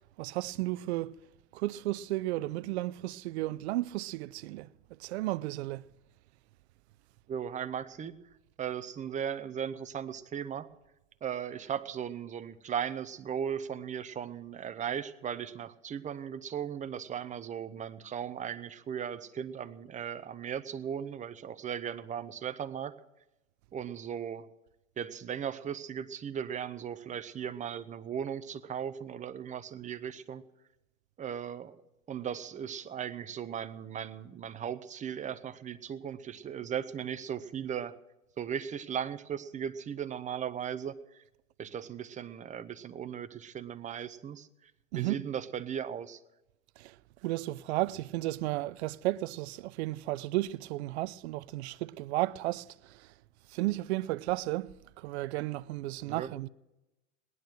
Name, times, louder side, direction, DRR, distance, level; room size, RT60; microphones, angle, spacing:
voice 1, 0.2-1.1 1.5-4.7 5.0-5.8 44.9-45.3 46.8-47.0 47.2-53.1 53.5-56.5, right 17 dB, 60° right, 0.6 m, -33 dB
voice 2, 7.3-8.1 8.6-10.7 11.2-23.0 23.7-24.5 25.0-30.4 31.2-31.8 32.1-38.0 38.4-41.2 41.6-44.7 45.0-46.2 56.0-56.3, right 8 dB, 20° right, 0.8 m, -37 dB
18.0 x 11.0 x 6.3 m
hypercardioid pair, 100°, 38 cm